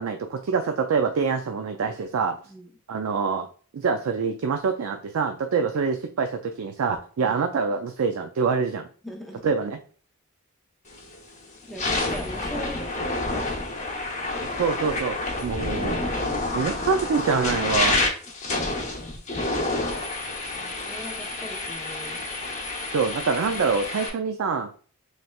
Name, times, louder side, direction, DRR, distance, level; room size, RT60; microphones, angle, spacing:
voice 1, 0.0-2.4 2.9-3.5 3.7-8.9 9.4-9.8 14.6-16.0 16.5-18.0 22.9-24.7, right 5 dB, 75° right, 6 dB, 0.4 m, -25 dB
voice 2, 9.0-9.5 11.7-13.6 20.6-22.2, equal, ahead, 1 dB, 0.7 m, -39 dB
sound 1, 10.9-11.2 11.6-24.1, left 2 dB, 35° left, 0.9 m, -28 dB
4.2 x 3.2 x 2.3 m, 0.42 s
head